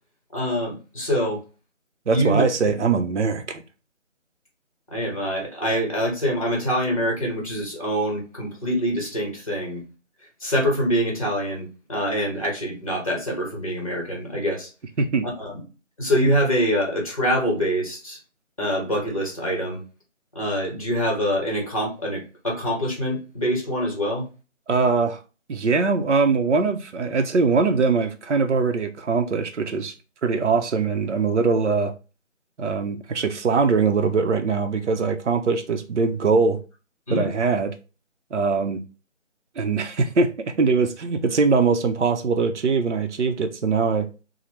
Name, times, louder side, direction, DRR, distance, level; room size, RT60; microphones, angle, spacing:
voice 1, 0.3-1.4 2.1-2.4 4.9-9.8 10.4-14.7 15.2-15.6 16.0-18.2 18.6-19.8 20.3-24.3 37.1-37.3, equal, 30° left, 0.8 m, -25 dB
voice 2, 2.1-3.6 15.0-15.3 24.7-25.2 25.5-29.9 30.2-31.9 32.6-36.6 37.1-37.7 38.3-38.8 39.6-44.1, right 4 dB, 65° right, 0.6 m, -22 dB
2.9 x 2.0 x 3.1 m
figure-of-eight pair, 165°, 38 cm